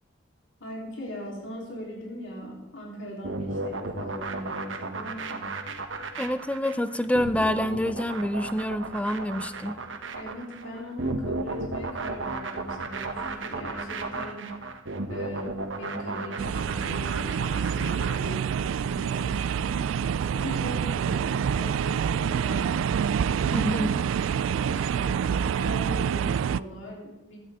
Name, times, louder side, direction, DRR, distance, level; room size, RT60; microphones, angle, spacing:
voice 1, 0.6-5.5 10.1-14.7 15.0-22.9 24.3-27.4, equal, 75° left, -2 dB, 3.6 m, -39 dB
sound 1, 3.2-18.7, right 3 dB, 75° right, 1.1 m, -34 dB
voice 2, 6.2-9.8 23.5-24.0, left 1 dB, 5° left, 12 dB, 0.6 m, -27 dB
sound 2, 16.4-26.6, right 7 dB, 90° right, 0.3 m, -27 dB
16.0 x 13.0 x 3.6 m, 1.0 s
head